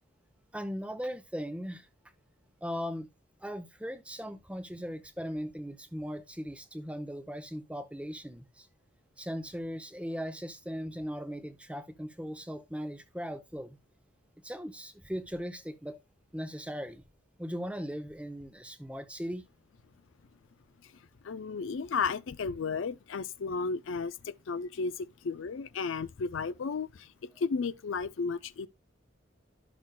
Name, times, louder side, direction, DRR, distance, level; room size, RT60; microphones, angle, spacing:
voice 1, 0.5-1.9 2.6-3.1 3.4-8.7 9.2-13.8 14.4-16.0 16.3-17.0 17.4-19.4 27.3-27.4, equal, 5° right, 0.6 m, -38 dB
voice 2, 21.2-28.7, left 5 dB, 75° left, 0.4 m, -34 dB
11.5 x 6.1 x 2.2 m
head